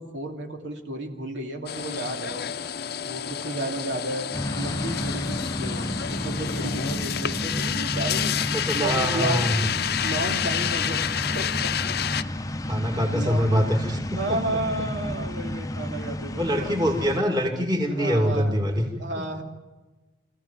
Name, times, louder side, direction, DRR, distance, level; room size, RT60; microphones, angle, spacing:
voice 1, 0.0-2.4 3.0-4.3 4.6-8.3 8.7-9.5 9.7-11.1 11.3-12.0 12.8-13.5 13.8-16.7 17.9-18.6 19.0-19.4, right 1 dB, 90° right, 2 dB, 2.6 m, -32 dB
sound 1, 1.7-12.2, left 9 dB, 60° left, 0.6 m, -29 dB
sound 2, 4.3-17.2, left 1 dB, 20° left, 0.7 m, -32 dB
voice 2, 8.5-9.7 12.7-14.0 14.3-14.4 16.4-18.8, equal, 25° right, 2 dB, 2.4 m, -24 dB
25.5 x 15.5 x 7.3 m, 1.2 s
head